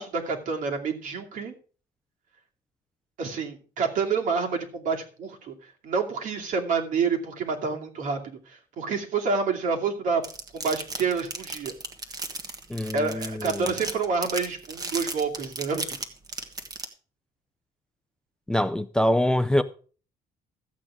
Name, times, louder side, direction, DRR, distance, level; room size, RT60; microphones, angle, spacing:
voice 1, 0.0-1.5 3.2-5.5 5.8-8.2 8.5-10.2 10.5-11.7 12.9-15.9, right 5 dB, 65° right, 2.6 m, -28 dB
crumpling silver foil, 10.2-16.8, right 3 dB, 25° right, 1.5 m, -34 dB
voice 2, 12.7-13.7 18.5-19.6, left 1 dB, 5° left, 0.5 m, -24 dB
13.5 x 8.5 x 4.9 m
cardioid pair, 150°, 15 cm